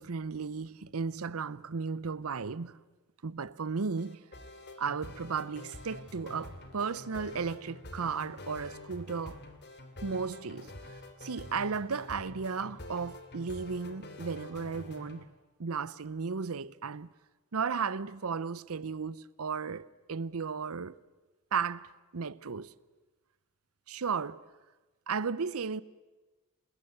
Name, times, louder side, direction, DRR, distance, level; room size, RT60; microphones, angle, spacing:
voice 1, 0.0-2.8 3.2-4.2 4.8-9.4 10.0-15.3 15.6-17.1 17.5-21.0 21.5-22.7 23.9-24.4 25.1-25.8, right 5 dB, 70° right, 0.7 m, -35 dB
Atari game masters loop, 4.0-15.2, left 2 dB, 50° left, 2.7 m, -47 dB
27.5 x 21.0 x 8.0 m
head